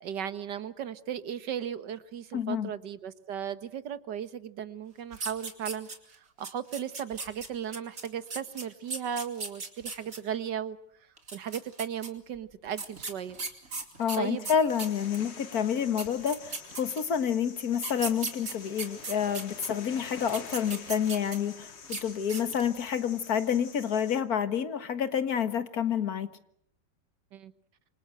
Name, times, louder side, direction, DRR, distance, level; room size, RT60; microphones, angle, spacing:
voice 1, 0.0-5.9 6.4-10.8 11.3-13.4 14.2-14.5 27.3-27.5, right 8 dB, 70° right, 12 dB, 1.9 m, -36 dB
voice 2, 2.3-2.7 14.0-26.3, left 8 dB, 55° left, 11 dB, 2.0 m, -29 dB
sound 1, 5.1-6.1 6.4-10.2 11.2-12.1 12.8-15.2 15.7-15.8 16.0-17.2 17.7-19.7 20.2-21.5 21.8-22.0 22.3-22.7, right 4 dB, 50° right, 3.2 m, -37 dB
sound 2, 14.7-24.2, left 6 dB, 90° left, 2.6 m, -47 dB
28.0 x 25.5 x 7.9 m, 0.69 s
omnidirectional pair, 1.9 m